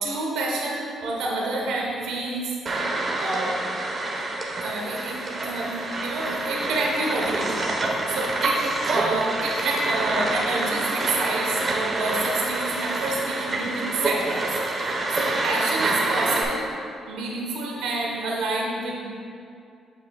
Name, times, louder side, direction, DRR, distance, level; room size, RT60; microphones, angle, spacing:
voice 1, 0.0-2.4 3.2-3.5 4.6-16.6 17.1-19.0, right 2 dB, 85° right, -2 dB, 1.1 m, -28 dB
sound 1, 2.7-16.4, right 2 dB, 40° right, 1.0 m, -27 dB
7.9 x 6.2 x 2.3 m, 2.5 s
cardioid pair, 90°, 0 cm